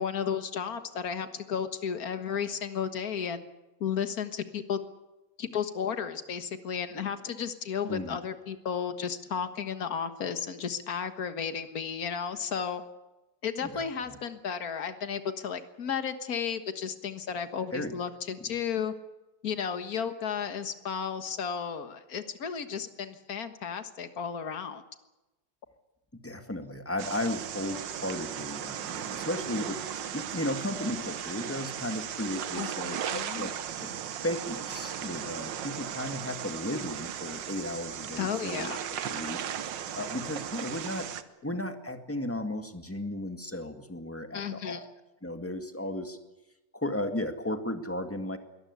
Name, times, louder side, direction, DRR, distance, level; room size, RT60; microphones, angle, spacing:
voice 1, 0.0-3.4 3.8-4.8 5.4-12.8 13.4-18.9 19.4-24.8 32.6-33.5 38.2-38.8 44.3-44.9, left 7 dB, 55° left, 9 dB, 1.9 m, -33 dB
voice 2, 7.9-8.2 13.6-14.2 17.7-18.0 26.2-33.5 33.8-34.0 34.2-41.1 41.4-44.8 45.2-46.2 46.7-48.4, left 1 dB, 10° left, 6 dB, 1.8 m, -35 dB
sound 1, 27.0-41.2, right 9 dB, 85° right, 1.7 m, -37 dB
22.5 x 19.0 x 8.2 m, 1.0 s
omnidirectional pair, 1.9 m